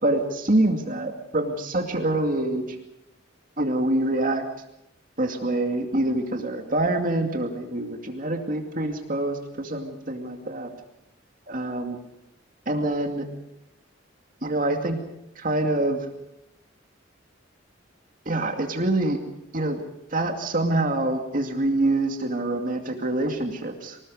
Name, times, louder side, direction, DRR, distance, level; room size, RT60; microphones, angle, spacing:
voice 1, 0.0-2.8 3.6-4.4 5.2-10.7 11.5-12.0 12.7-13.3 14.4-15.0 15.4-16.1 18.3-19.2 19.5-19.8 20.1-24.0, right 1 dB, 45° right, 4 dB, 2.4 m, -25 dB
25.0 x 19.0 x 6.5 m, 0.85 s
head